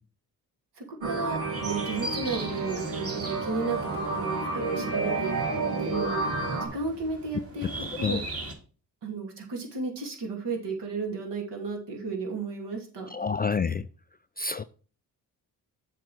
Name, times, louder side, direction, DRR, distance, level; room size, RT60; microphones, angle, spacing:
voice 1, 0.8-6.3 6.6-8.2 9.0-13.1, right 4 dB, 65° right, 2.6 m, -34 dB
sound 1, 1.0-6.7, right 3 dB, 85° right, 2.2 m, -30 dB
sound 2, 1.5-8.5, right 1 dB, 30° right, 2.5 m, -40 dB
voice 2, 13.1-13.9 14.4-14.6, left 5 dB, 25° left, 0.3 m, -28 dB
7.4 x 3.9 x 6.2 m
hypercardioid pair, 45°, 45 cm